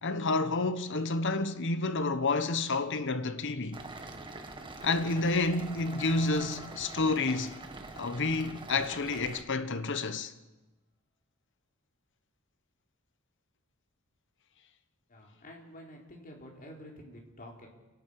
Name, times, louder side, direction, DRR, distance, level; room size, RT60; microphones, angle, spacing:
voice 1, 0.0-3.8 4.8-7.6 8.0-10.3, left 3 dB, 60° left, 1.2 m, -29 dB
sound 1, 3.7-9.4, right 2 dB, 25° right, 1.8 m, -45 dB
sound 2, 4.5-9.4, right 1 dB, ahead, 5.3 m, -54 dB
voice 2, 15.1-17.7, equal, 40° left, 4.3 m, -49 dB
29.0 x 12.0 x 8.6 m
head